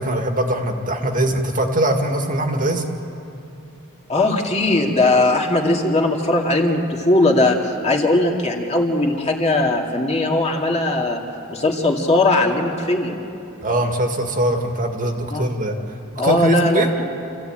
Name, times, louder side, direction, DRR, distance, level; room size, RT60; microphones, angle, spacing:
voice 1, 0.0-2.8 13.6-15.8 16.2-16.9, right 1 dB, 40° right, 3 dB, 1.9 m, -22 dB
voice 2, 4.1-11.2 11.5-13.2 15.3-15.5 16.2-16.9, left 2 dB, 30° left, -1 dB, 2.4 m, -19 dB
28.0 x 15.5 x 8.9 m, 2.7 s
head